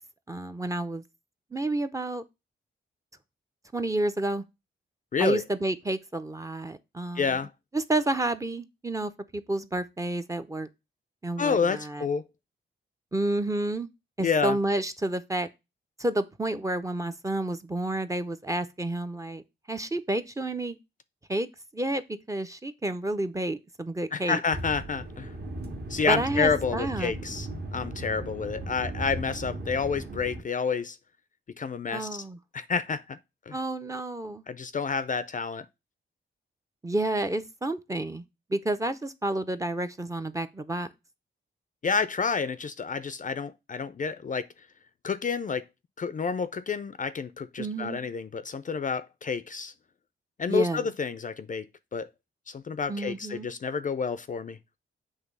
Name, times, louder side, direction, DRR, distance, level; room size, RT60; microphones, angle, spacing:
voice 1, 0.3-1.0 1.5-2.2 3.7-4.4 5.2-7.4 7.7-10.7 11.2-12.1 13.1-13.9 14.2-15.5 16.0-19.4 19.7-20.8 21.3-21.5 21.7-24.4 26.1-27.1 31.9-32.4 33.5-34.4 36.8-38.2 38.5-40.9 47.6-48.0 50.5-50.9 52.9-53.5, right 2 dB, 15° right, 0.5 m, -30 dB
voice 2, 7.2-7.5 11.4-12.2 14.2-14.6 24.1-25.3 25.9-31.0 31.6-32.2 32.5-33.2 33.5-33.6 34.5-35.7 41.8-44.5 45.0-45.6 46.0-49.7 50.4-51.7 51.9-52.1 52.5-54.6, left 5 dB, 40° left, 0.4 m, -29 dB
sound 1, 24.5-30.4, right 1 dB, 50° right, 1.6 m, -37 dB
8.1 x 3.2 x 5.3 m
wide cardioid pair, 130°, 21 cm